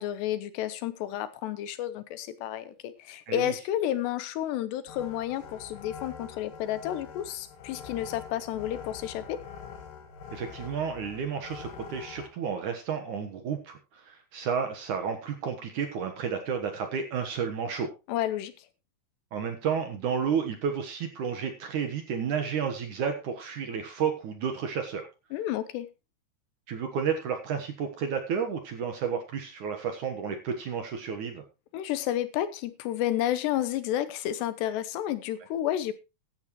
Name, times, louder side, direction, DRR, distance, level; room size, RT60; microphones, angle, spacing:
voice 1, 0.0-9.4 18.1-18.5 25.3-25.9 31.7-35.9, left 12 dB, 80° left, 13 dB, 3.1 m, -31 dB
sound 1, 4.9-12.3, left 6 dB, 60° left, 2.8 m, -44 dB
voice 2, 10.3-17.9 19.3-25.1 26.7-31.4, right 7 dB, 60° right, 6 dB, 2.2 m, -31 dB
15.0 x 11.0 x 3.1 m, 0.28 s
omnidirectional pair, 4.9 m